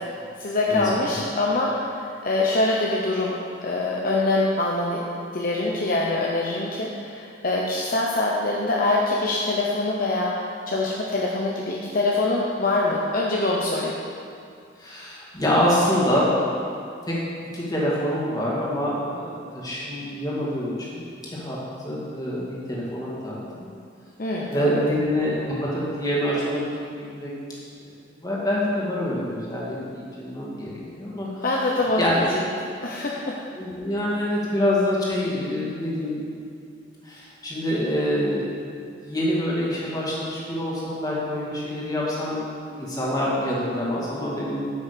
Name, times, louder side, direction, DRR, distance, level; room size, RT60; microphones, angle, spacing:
voice 1, 0.4-5.0 5.3-14.0 24.2-24.8 31.4-33.4, left 2 dB, 50° left, -3 dB, 0.8 m, -24 dB
voice 2, 14.8-16.3 17.0-17.1 17.5-21.0 21.3-21.6 21.8-23.7 24.5-25.4 25.6-27.3 28.2-31.3 32.0-32.3 33.6-36.3 37.0-38.6 39.0-44.7, equal, 20° left, -6 dB, 2.2 m, -26 dB
8.9 x 6.2 x 6.8 m, 2.4 s
head